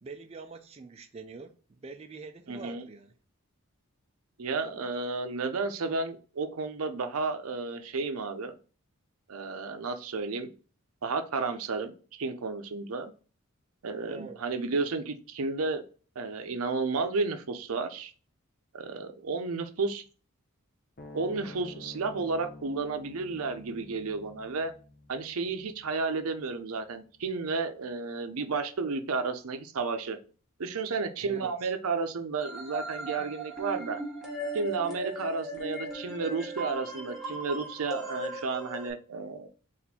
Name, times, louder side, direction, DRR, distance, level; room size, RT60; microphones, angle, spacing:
voice 1, 0.0-3.1 14.1-14.4 31.2-31.7 33.2-33.4, right 3 dB, 30° right, 0.3 m, -45 dB
voice 2, 2.5-2.8 4.4-8.5 9.3-10.5 11.0-13.1 13.8-15.8 16.2-18.1 18.7-20.0 21.1-24.7 25.1-30.2 30.6-34.0 34.5-39.5, right 4 dB, 85° right, 0.6 m, -32 dB
sound 1, 21.0-27.6, left 2 dB, 40° left, 0.7 m, -50 dB
sound 2, 32.4-38.9, right 2 dB, ahead, 1.1 m, -38 dB
4.3 x 2.5 x 4.1 m
head